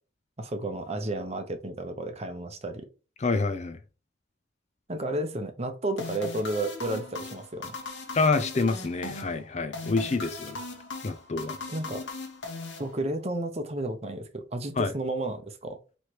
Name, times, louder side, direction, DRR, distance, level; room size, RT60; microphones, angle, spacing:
voice 1, 0.4-2.8 4.9-7.7 11.7-12.1 12.8-15.8, right 1 dB, 35° right, 0.7 m, -32 dB
voice 2, 3.2-3.8 8.1-10.6 11.0-11.6 14.8-14.9, left 3 dB, 35° left, 0.5 m, -27 dB
sound 1, 6.0-13.4, left 3 dB, 65° left, 1.2 m, -39 dB
4.5 x 3.2 x 2.9 m
head